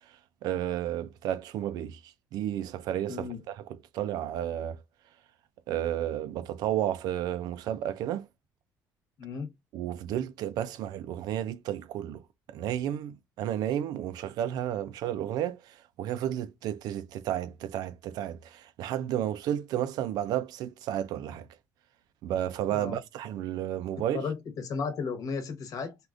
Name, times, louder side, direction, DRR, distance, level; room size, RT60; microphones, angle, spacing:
voice 1, 0.4-4.8 5.7-8.3 9.7-12.2 12.5-21.5 22.2-24.2, right 11 dB, 70° right, 0.4 m, -32 dB
voice 2, 3.1-3.4 9.2-9.5 22.7-23.0 24.1-26.0, left 5 dB, 55° left, 1.1 m, -34 dB
3.5 x 2.4 x 2.4 m
cardioid pair, 140°, 7 cm